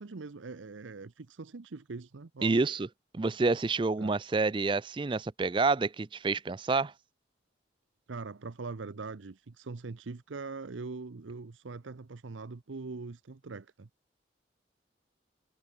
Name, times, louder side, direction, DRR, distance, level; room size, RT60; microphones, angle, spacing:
voice 1, 0.0-2.6 4.0-4.2 8.1-13.9, right 3 dB, 85° right, 0.7 m, -42 dB
voice 2, 2.4-2.9 3.1-6.9, right 3 dB, 25° right, 0.4 m, -28 dB
head